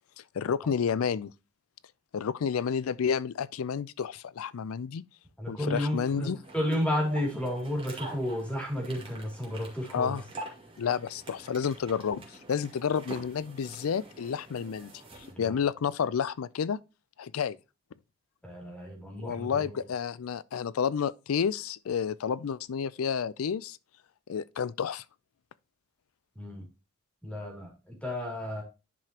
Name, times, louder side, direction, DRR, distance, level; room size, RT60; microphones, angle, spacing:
voice 1, 0.3-1.3 2.1-5.0 5.5-6.4 9.9-10.2 10.8-14.9 15.4-16.8 17.2-17.6 19.2-23.8 24.3-25.0, left 7 dB, 85° left, 0.4 m, -30 dB
voice 2, 5.4-6.3 6.5-10.2 15.3-15.4 18.4-19.6 26.3-26.6 27.2-28.6, left 1 dB, 5° left, 2.7 m, -32 dB
sound 1, 6.4-15.3, right 2 dB, 25° right, 2.2 m, -46 dB
10.5 x 4.9 x 2.9 m
head